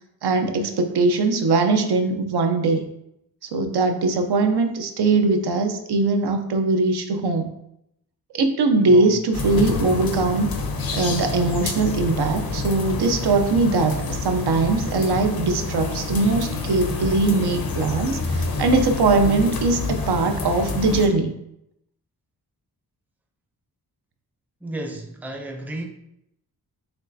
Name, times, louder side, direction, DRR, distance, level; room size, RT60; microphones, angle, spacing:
voice 1, 0.2-2.8 3.5-7.5 8.3-10.5 10.9-21.4, right 3 dB, 85° right, 6 dB, 0.6 m, -21 dB
voice 2, 8.8-9.2 24.6-25.9, right 1 dB, 5° right, 3 dB, 0.5 m, -33 dB
sound 1, 9.3-21.1, left 3 dB, 65° left, 0.7 m, -28 dB
6.1 x 3.1 x 2.7 m, 0.79 s
wide cardioid pair, 155°, 38 cm